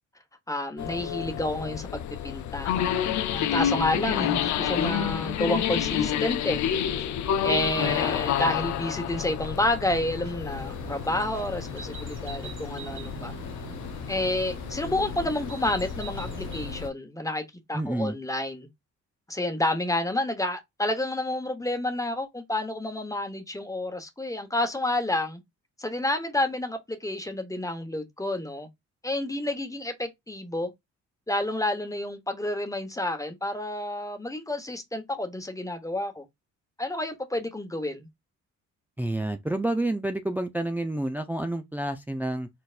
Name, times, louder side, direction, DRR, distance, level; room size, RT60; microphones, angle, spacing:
voice 1, 0.5-1.9 2.2-2.8 3.3-6.6 7.4-13.3 14.1-17.4 17.7-18.7 19.3-25.4 25.8-28.7 29.0-30.7 31.3-36.2 36.8-38.1, left 1 dB, 10° left, 1.1 m, -29 dB
sound 1, 0.8-16.9, left 10 dB, 70° left, 0.6 m, -30 dB
sound 2, 4.8-4.9 5.9-6.2 6.4-6.7 7.0-7.1 7.8-8.3 8.6-8.9 9.2-9.3 10.0-10.5 10.8-11.1 11.3-11.5 12.2-12.7, left 1 dB, 65° right, 1.3 m, -50 dB
sound 3, 10.5-16.9, right 6 dB, 40° right, 1.0 m, -42 dB
voice 2, 17.7-18.1 39.0-42.5, right 1 dB, 5° right, 0.5 m, -29 dB
4.4 x 4.0 x 2.4 m
cardioid pair, 90°, 30 cm